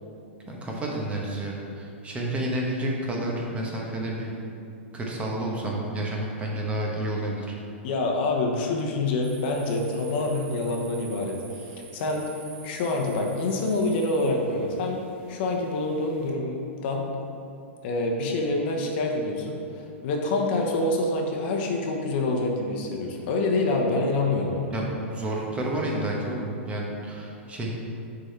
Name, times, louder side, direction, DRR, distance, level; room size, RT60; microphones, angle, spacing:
voice 1, 0.5-4.3 4.9-7.5 24.7-27.7, right 1 dB, 15° right, -2 dB, 1.1 m, -30 dB
voice 2, 7.8-12.3 12.6-15.0 15.3-17.1 17.8-19.6 20.0-24.7, left 2 dB, 50° left, 1 dB, 0.9 m, -26 dB
sound 1, 9.2-16.3, right 6 dB, 55° right, 0.8 m, -48 dB
6.4 x 4.0 x 4.4 m, 2.6 s
hypercardioid pair, 120°, 7 cm